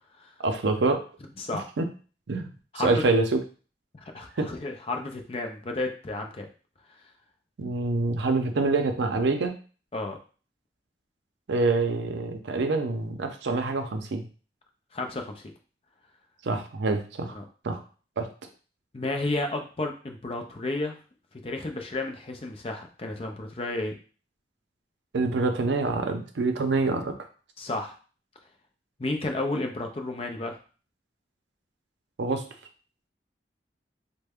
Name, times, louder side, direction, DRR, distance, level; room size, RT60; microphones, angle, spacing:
voice 1, 0.4-1.0 1.8-1.9 2.3-2.5 2.8-3.4 4.4-4.5 7.6-9.6 11.5-14.3 16.4-17.4 17.6-17.8 18.2-18.3 25.1-27.1 32.2-32.4, right 3 dB, 85° right, 6 dB, 0.5 m, -26 dB
voice 2, 3.9-6.5 9.9-10.2 14.9-15.4 17.4-17.5 18.9-21.0 21.4-23.9 27.6-28.0 29.0-30.6, left 2 dB, 30° left, 4 dB, 0.4 m, -32 dB
3.3 x 2.1 x 3.5 m, 0.38 s
head